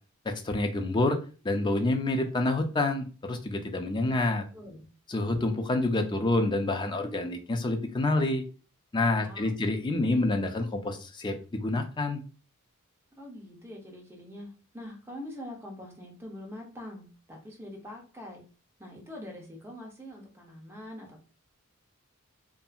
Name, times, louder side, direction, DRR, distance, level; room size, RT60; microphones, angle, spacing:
voice 1, 0.3-1.2 1.4-4.4 5.1-8.4 8.9-12.2, left 2 dB, 20° left, 0.3 m, -28 dB
voice 2, 4.5-4.9 9.1-9.6 13.1-18.4 18.8-21.2, left 1 dB, 10° right, 0.7 m, -44 dB
2.7 x 2.5 x 2.3 m
head